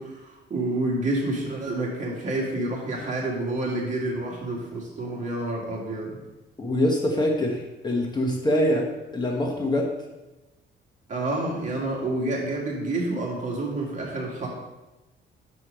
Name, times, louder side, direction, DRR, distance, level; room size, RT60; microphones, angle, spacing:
voice 1, 0.0-6.2 11.1-14.5, right 2 dB, 40° right, -2 dB, 1.8 m, -29 dB
voice 2, 6.6-9.9, left 1 dB, 20° left, 0 dB, 0.9 m, -24 dB
6.3 x 4.4 x 5.0 m, 1.0 s
cardioid pair, 130°, 19 cm